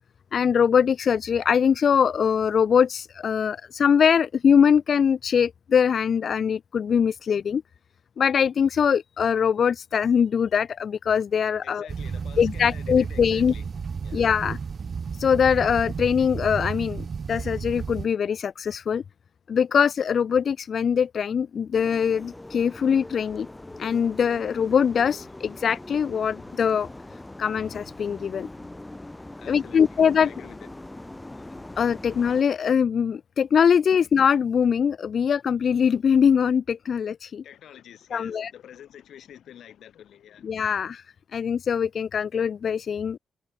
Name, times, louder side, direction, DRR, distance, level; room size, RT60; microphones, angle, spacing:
voice 1, 0.3-7.6 8.2-11.9 12.4-13.5 14.1-14.6 15.1-19.0 19.5-23.5 23.8-26.9 27.4-28.5 29.5-30.3 31.8-37.4 38.1-38.5 40.4-41.0 41.3-43.2, left 7 dB, 55° left, 0.4 m, -22 dB
voice 2, 11.6-13.7 14.0-14.3 29.4-30.9 37.4-40.6, left 10 dB, 75° left, 3.0 m, -48 dB
sound 1, 11.9-18.1, right 5 dB, 45° right, 1.1 m, -32 dB
sound 2, 21.7-32.4, left 1 dB, 10° left, 3.6 m, -42 dB
cardioid pair, 95°, 0 cm